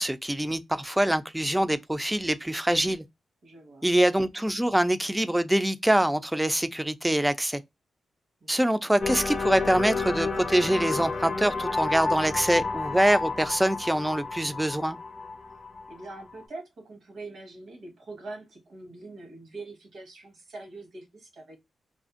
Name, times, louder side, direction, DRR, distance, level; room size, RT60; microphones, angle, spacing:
voice 1, 0.0-3.0 3.8-7.6 8.5-15.0, right 1 dB, 10° right, 0.3 m, -24 dB
voice 2, 3.4-3.9 8.4-8.5 15.9-21.6, right 2 dB, 75° right, 1.1 m, -43 dB
Remnants Of The Past, 9.0-16.4, left 3 dB, 40° left, 0.6 m, -31 dB
2.5 x 2.4 x 2.4 m
cardioid pair, 65°, 0 cm